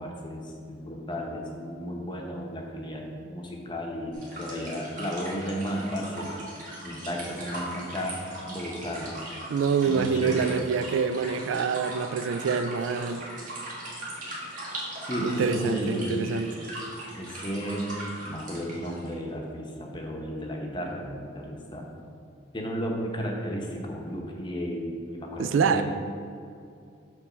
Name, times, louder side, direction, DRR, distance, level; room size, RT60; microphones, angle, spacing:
voice 1, 0.0-6.3 6.8-8.1 8.5-9.1 9.9-10.5 15.0-16.4 17.1-21.8 22.5-25.8, equal, 25° left, 0 dB, 0.8 m, -33 dB
sound 1, 4.1-19.1, right 1 dB, 40° right, 1.6 m, -39 dB
voice 2, 9.5-13.2 15.2-16.5 25.4-25.8, right 6 dB, 70° right, 10 dB, 0.3 m, -26 dB
6.9 x 3.3 x 6.1 m, 2.5 s
head